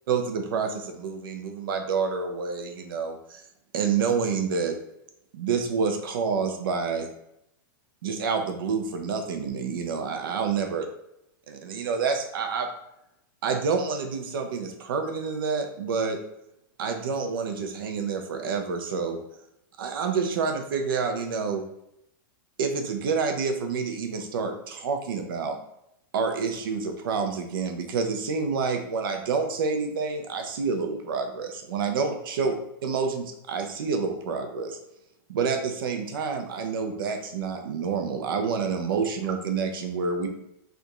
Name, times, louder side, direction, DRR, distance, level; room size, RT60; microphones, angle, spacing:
voice 1, 0.1-3.4 3.7-4.7 5.3-7.1 8.0-10.8 11.5-12.7 13.4-16.2 16.8-19.2 19.8-21.6 22.6-25.6 26.1-32.5 32.8-34.8 35.3-40.3, right 5 dB, 75° right, 5 dB, 0.8 m, -28 dB
3.4 x 2.6 x 4.5 m, 0.81 s
supercardioid pair, 160°, 12 cm